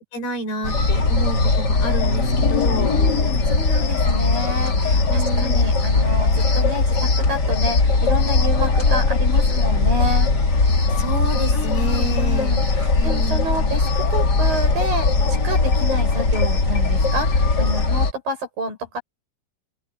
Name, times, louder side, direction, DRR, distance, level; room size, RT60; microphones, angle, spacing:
voice 1, 0.1-2.9 5.1-5.6 10.9-12.6 13.0-13.5, right 1 dB, 70° left, 9.3 m, -30 dB
sound 1, 0.6-18.1, left 3 dB, 30° left, 2.1 m, -19 dB
voice 2, 2.8-10.3 11.5-19.0, equal, 55° right, 9.3 m, -29 dB
open air
omnidirectional pair, 4.8 m